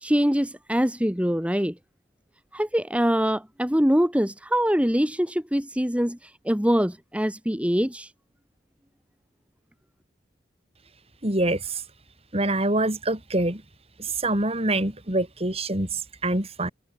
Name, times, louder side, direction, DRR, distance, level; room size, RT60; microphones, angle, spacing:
voice 1, 0.0-1.7 2.5-8.1, equal, 5° right, 2.4 m, -24 dB
voice 2, 11.2-11.8 12.3-13.6 14.0-16.7, right 2 dB, 35° right, 5.4 m, -25 dB
head